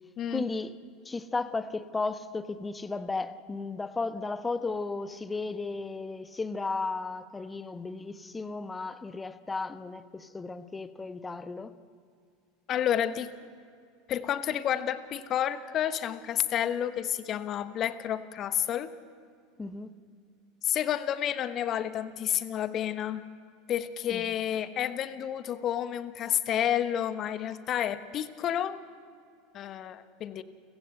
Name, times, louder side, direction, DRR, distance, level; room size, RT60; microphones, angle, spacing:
voice 1, 0.3-0.7 1.0-11.7 19.6-19.9 24.1-24.4, left 3 dB, 15° left, 1.1 m, -34 dB
voice 2, 12.7-13.3 14.1-18.9 20.6-23.2 23.7-28.8 29.5-30.4, left 10 dB, 40° left, 1.2 m, -30 dB
29.5 x 16.0 x 7.9 m
figure-of-eight pair, 80°, 0 cm